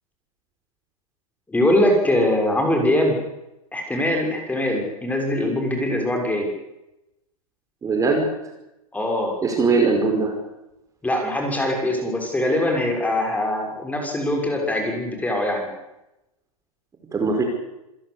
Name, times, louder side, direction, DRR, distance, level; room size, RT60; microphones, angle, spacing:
voice 1, 1.5-3.2 3.7-6.5 8.9-9.3 11.0-15.7, left 1 dB, 10° left, 2 dB, 6.7 m, -22 dB
voice 2, 7.8-8.3 9.4-10.3 17.1-17.4, right 4 dB, 15° right, 2 dB, 5.5 m, -20 dB
27.5 x 16.5 x 8.3 m, 0.92 s
hypercardioid pair, 115°, 19 cm